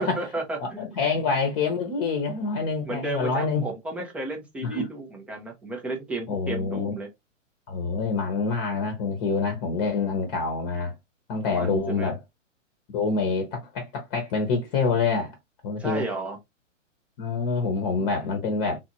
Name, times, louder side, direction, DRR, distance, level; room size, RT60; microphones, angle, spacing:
voice 1, 0.0-0.9 2.8-7.1 11.5-12.1 15.8-16.4 18.0-18.1, right 2 dB, 5° right, 0.4 m, -33 dB
voice 2, 0.6-3.7 4.6-4.9 6.3-7.0 7.7-10.9 11.3-12.2 12.9-15.4 15.6-16.0 17.2-18.8, left 4 dB, 30° left, 0.8 m, -26 dB
3.7 x 2.5 x 2.9 m
hypercardioid pair, 120°, 38 cm